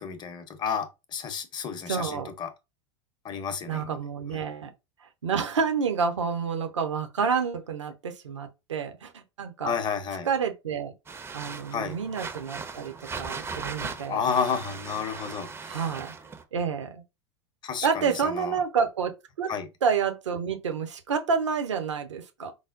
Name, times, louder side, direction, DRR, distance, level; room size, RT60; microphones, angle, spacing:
voice 1, 0.0-2.5 3.2-4.0 4.3-4.4 9.6-10.3 11.7-12.0 14.1-15.8 17.6-18.6 19.5-19.7, left 6 dB, 30° left, 0.7 m, -31 dB
voice 2, 1.9-2.3 3.7-4.7 5.0-9.7 10.2-10.9 11.3-14.3 15.7-16.1 16.5-17.0 17.8-19.5 19.8-22.5, right 6 dB, 80° right, 0.7 m, -29 dB
sound 1, 11.1-16.4, right 5 dB, 15° right, 0.5 m, -38 dB
4.8 x 2.0 x 2.4 m
figure-of-eight pair, 85°, 15 cm